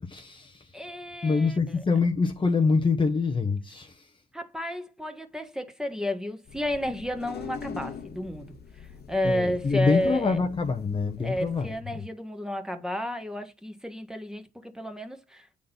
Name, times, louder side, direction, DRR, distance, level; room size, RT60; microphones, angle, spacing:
voice 1, 0.0-0.8 1.2-4.1 9.2-12.0, left 4 dB, 25° left, 1.0 m, -26 dB
voice 2, 0.7-1.8 4.3-10.4 11.2-15.5, left 1 dB, 5° right, 1.5 m, -32 dB
sound 1, 6.4-11.8, left 6 dB, 55° left, 1.3 m, -43 dB
8.6 x 4.0 x 5.5 m
cardioid pair, 90°, 20 cm